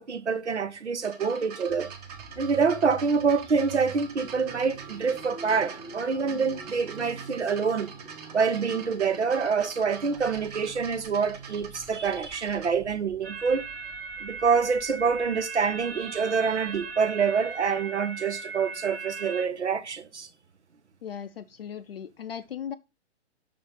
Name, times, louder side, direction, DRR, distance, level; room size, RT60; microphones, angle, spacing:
voice 1, 0.0-1.9 2.4-7.9 8.3-13.7 14.2-20.3, right 5 dB, 80° right, 0.8 m, -26 dB
sound 1, 1.0-12.7 13.6-13.7, right 6 dB, 35° right, 1.1 m, -44 dB
sound 2, 1.7-17.9, right 4 dB, 5° right, 0.7 m, -47 dB
sound 3, 13.2-19.5, right 4 dB, 60° right, 1.1 m, -38 dB
voice 2, 21.0-22.7, left 8 dB, 60° left, 0.5 m, -37 dB
6.0 x 3.7 x 5.5 m
figure-of-eight pair, 125°, 34 cm